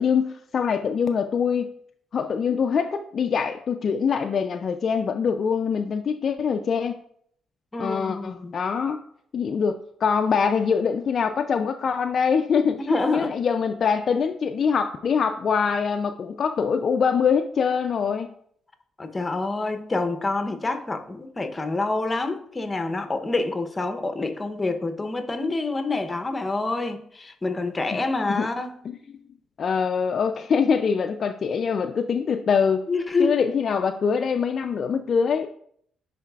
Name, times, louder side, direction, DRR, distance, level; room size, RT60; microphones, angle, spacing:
voice 1, 0.0-1.7 2.1-7.0 7.8-9.0 9.3-18.3 27.9-28.0 28.3-28.5 28.8-29.2 29.6-32.8 33.2-35.5, left 6 dB, 50° left, 0.3 m, -24 dB
voice 2, 7.7-8.5 12.8-13.3 19.0-28.8 32.9-33.4, left 3 dB, 20° left, 0.7 m, -27 dB
10.0 x 4.0 x 2.3 m
cardioid pair, 90°, 0 cm